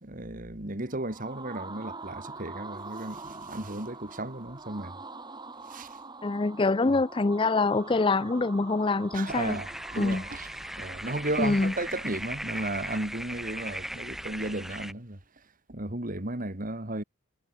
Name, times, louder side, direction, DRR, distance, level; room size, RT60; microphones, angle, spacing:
voice 1, 0.0-4.9 5.7-6.0 9.1-10.5 10.8-15.2 15.7-17.0, right 2 dB, 40° right, 2.7 m, -34 dB
sound 1, 0.9-11.8, right 3 dB, 20° right, 7.1 m, -44 dB
voice 2, 6.2-9.6 10.0-10.2 11.4-11.7, left 3 dB, 25° left, 0.5 m, -25 dB
sound 2, 9.3-14.9, equal, ahead, 1.9 m, -38 dB
head